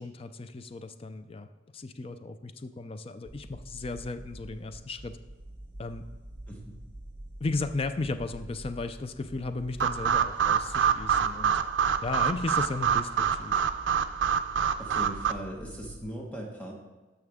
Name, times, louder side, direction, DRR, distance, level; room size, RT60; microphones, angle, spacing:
voice 1, 0.0-1.5 1.7-5.2 5.8-6.0 7.4-11.6 12.0-13.6, left 3 dB, 30° left, 10 dB, 0.4 m, -35 dB
sound 1, 3.3-16.0, right 1 dB, 30° right, 1.9 m, -46 dB
voice 2, 6.5-6.8 14.8-16.7, equal, 10° left, -1 dB, 1.0 m, -39 dB
sound 2, 9.8-15.3, right 7 dB, 90° right, 0.4 m, -26 dB
13.0 x 5.8 x 3.6 m, 1.2 s
head